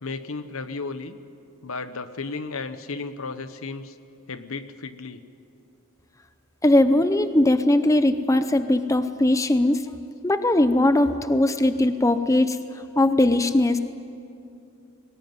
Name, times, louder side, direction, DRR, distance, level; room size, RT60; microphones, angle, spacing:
voice 1, 0.0-1.2 1.6-3.9 4.3-5.2, left 3 dB, 70° left, 11 dB, 1.1 m, -34 dB
voice 2, 6.6-9.9 10.2-12.6 13.0-13.8, left 1 dB, 15° left, 10 dB, 0.6 m, -20 dB
23.5 x 19.0 x 9.5 m, 2.5 s
head